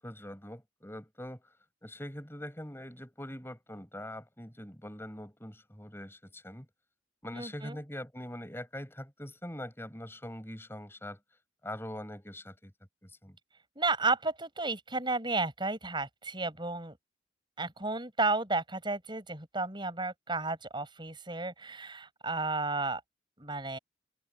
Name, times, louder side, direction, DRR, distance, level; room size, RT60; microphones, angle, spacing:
voice 1, 0.0-1.4 1.8-6.7 7.2-11.2 11.6-12.7 13.0-13.4, left 1 dB, 15° left, 7.6 m, -43 dB
voice 2, 7.3-7.8 13.8-17.0 17.6-23.0 23.4-23.8, right 3 dB, 25° right, 6.3 m, -32 dB
head